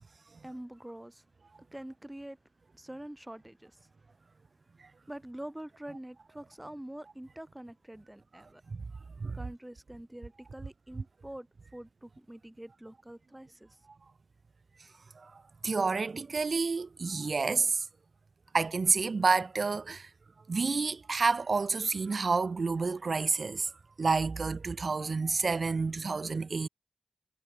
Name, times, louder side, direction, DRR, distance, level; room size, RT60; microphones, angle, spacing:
voice 1, 0.4-1.3 1.6-2.4 2.7-3.9 5.1-8.6 9.3-13.8, right 1 dB, 15° right, 2.0 m, -45 dB
voice 2, 15.6-17.8 18.5-20.1 20.5-23.7 24.0-26.7, right 4 dB, 70° right, 0.4 m, -29 dB
wide cardioid pair, 60°, 0 cm